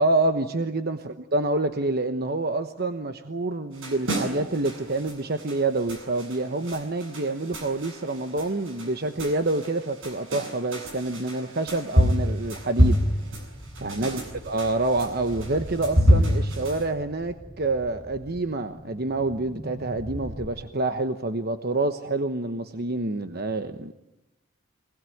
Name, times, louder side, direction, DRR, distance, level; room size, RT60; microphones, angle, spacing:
voice 1, 0.0-13.0 13.8-23.9, right 2 dB, 50° right, 8 dB, 1.1 m, -27 dB
sound 1, 3.7-16.8, equal, 75° right, 7.8 m, -27 dB
sound 2, 13.0-20.5, equal, 30° right, 5.8 m, -41 dB
25.0 x 20.0 x 9.3 m, 0.94 s
head